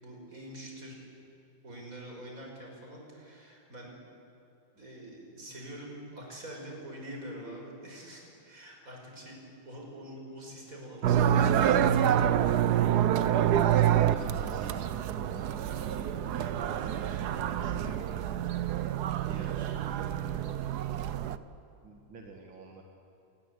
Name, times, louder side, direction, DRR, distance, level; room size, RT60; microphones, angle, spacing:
voice 1, 0.0-1.0 1.6-3.9 4.7-9.4 9.7-12.5 17.7-18.0, right 1 dB, 45° right, 0 dB, 6.0 m, -45 dB
sound 1, 11.0-21.4, right 10 dB, 65° right, 1.2 m, -27 dB
voice 2, 13.5-14.9 15.2-18.0 19.2-20.8 21.8-22.8, right 3 dB, 80° right, 2 dB, 2.6 m, -47 dB
27.5 x 20.0 x 8.3 m, 2.8 s
omnidirectional pair, 2.1 m